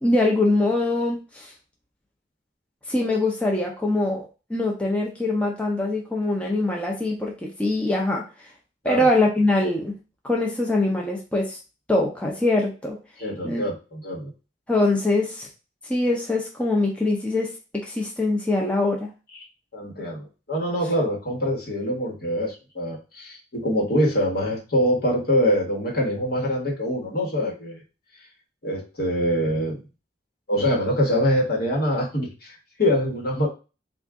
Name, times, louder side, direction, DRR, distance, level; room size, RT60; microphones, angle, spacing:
voice 1, 0.0-1.5 2.9-8.2 8.8-9.9 10.2-11.6 11.9-13.0 13.4-13.6 14.7-15.5 15.9-17.5 17.9-19.1, left 2 dB, 5° left, -2 dB, 0.6 m, -23 dB
voice 2, 13.2-14.3 19.3-19.5 19.7-27.8 28.6-29.8 30.5-33.5, equal, 55° left, -1 dB, 1.3 m, -24 dB
3.7 x 2.5 x 3.5 m, 0.31 s
head